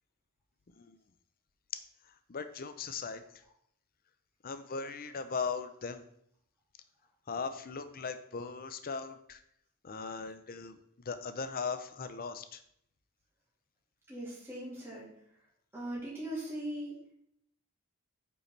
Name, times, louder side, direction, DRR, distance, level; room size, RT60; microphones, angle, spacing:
voice 1, 2.3-3.2 4.4-6.0 7.3-9.4 9.8-10.8 11.1-12.6, left 5 dB, 45° left, 10 dB, 0.6 m, -38 dB
voice 2, 14.1-15.1 15.7-17.0, right 1 dB, 10° right, -8 dB, 2.9 m, -39 dB
8.5 x 5.4 x 3.3 m, 0.71 s
head